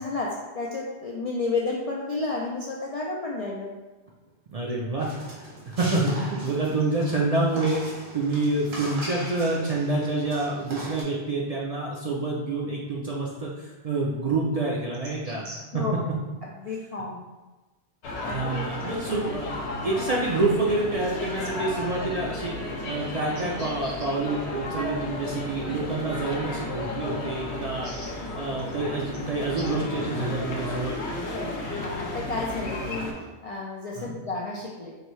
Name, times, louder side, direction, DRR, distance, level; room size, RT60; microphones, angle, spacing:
voice 1, 0.0-3.7 15.2-15.9 16.4-17.2 18.2-18.7 23.8-24.0 27.8-28.1 31.6-33.1 33.4-35.0, left 3 dB, 60° left, -3 dB, 0.4 m, -32 dB
voice 2, 4.5-5.4 5.7-7.9 8.1-15.5 15.7-15.8 18.2-19.5 19.8-22.6 22.9-27.9 28.3-30.9 33.9-34.1, right 2 dB, 50° right, -3 dB, 0.4 m, -27 dB
sound 1, 5.0-11.0, right 1 dB, 70° right, 1.5 m, -39 dB
sound 2, 18.0-33.1, left 2 dB, 80° left, 1.0 m, -33 dB
4.8 x 2.6 x 3.1 m, 1.2 s
omnidirectional pair, 1.1 m